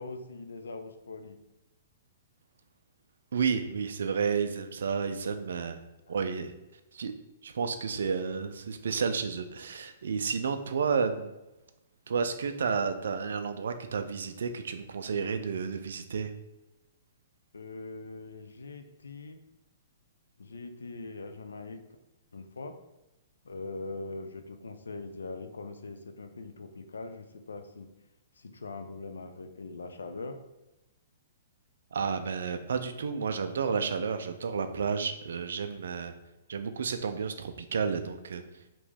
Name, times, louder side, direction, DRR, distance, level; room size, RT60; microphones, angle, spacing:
voice 1, 0.0-1.4 6.1-6.2 17.5-19.4 20.4-22.0 22.3-22.8 23.4-27.9 28.3-30.4, left 3 dB, 75° left, 7 dB, 0.4 m, -42 dB
voice 2, 3.3-5.8 6.1-6.5 6.9-7.1 7.4-11.3 12.1-16.3 31.9-36.1 36.5-38.4, right 5 dB, 65° right, 8 dB, 0.3 m, -31 dB
2.9 x 2.6 x 3.3 m, 0.99 s
figure-of-eight pair, 115°, 0 cm